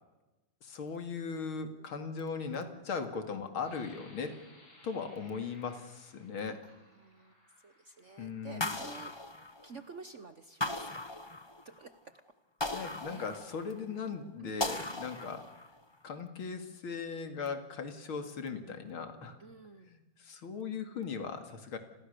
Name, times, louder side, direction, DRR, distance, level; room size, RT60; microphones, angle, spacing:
voice 1, 0.6-4.3 4.8-6.6 8.2-8.7 12.7-15.5 16.0-19.4 19.9-21.8, left 5 dB, 85° left, 7 dB, 3.1 m, -38 dB
sound 1, 3.6-9.2 9.9-10.0 10.5-11.0, left 1 dB, 70° left, 8.3 m, -61 dB
voice 2, 6.6-9.1 9.6-11.1 11.6-12.2 12.6-13.4 14.4-14.6 19.4-19.9, right 4 dB, 45° right, 11 dB, 1.1 m, -51 dB
sound 2, 8.6-10.0 10.6-11.8 12.6-13.8 14.6-15.8, left 2 dB, 15° left, 1.0 m, -37 dB
29.5 x 22.5 x 6.8 m, 1.1 s
omnidirectional pair, 2.2 m